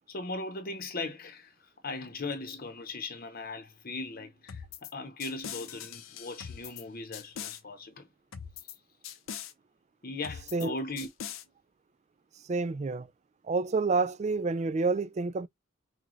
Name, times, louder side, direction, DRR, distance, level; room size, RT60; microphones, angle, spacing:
voice 1, 0.1-8.1 8.6-8.7 10.0-11.1, left 3 dB, 45° left, 0.8 m, -39 dB
sound 1, 4.5-4.9 5.2-6.8 7.1-7.6 8.3-8.8 9.0-9.5 10.2-10.7 11.0-11.4, left 8 dB, 80° left, 0.7 m, -41 dB
voice 2, 12.5-13.1 13.5-15.5, right 3 dB, 35° right, 0.3 m, -28 dB
6.2 x 2.3 x 3.1 m
head